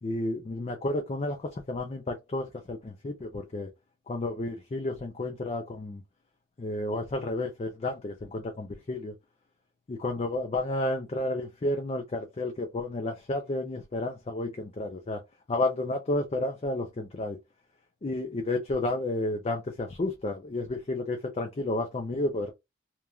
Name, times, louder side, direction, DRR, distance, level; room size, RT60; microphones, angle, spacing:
voice 1, 0.0-3.7 4.1-6.0 6.6-9.1 9.9-15.2 15.5-17.4 18.0-22.5, left 2 dB, 35° left, 0.4 m, -31 dB
3.0 x 2.3 x 2.3 m
head